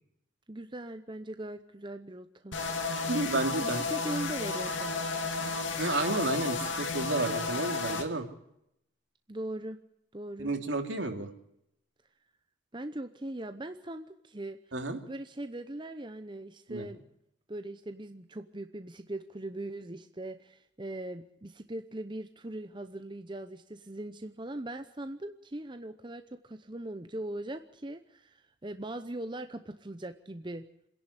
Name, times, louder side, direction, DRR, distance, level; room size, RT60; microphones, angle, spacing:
voice 1, 0.5-2.6 3.6-5.0 9.3-9.8 10.1-10.5 12.7-14.6 15.1-17.0 17.5-30.7, right 1 dB, 25° right, 8 dB, 0.8 m, -40 dB
sound 1, 2.5-8.0, left 4 dB, 75° left, 2.6 m, -32 dB
voice 2, 3.1-3.9 5.8-8.3 10.4-11.3 14.7-15.0 16.7-16.9, right 2 dB, 70° right, 5 dB, 2.8 m, -31 dB
27.0 x 11.0 x 9.8 m, 0.79 s
head